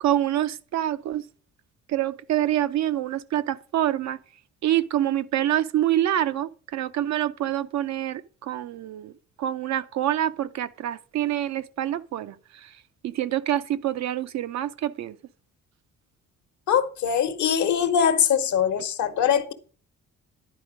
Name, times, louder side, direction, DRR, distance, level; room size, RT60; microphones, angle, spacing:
voice 1, 0.0-1.2 1.9-4.2 4.6-9.1 9.4-12.4 13.0-15.2, right 12 dB, 65° right, 0.6 m, -26 dB
voice 2, 16.7-19.5, left 8 dB, 70° left, 1.0 m, -22 dB
10.5 x 4.3 x 5.0 m
cardioid pair, 90°, 30 cm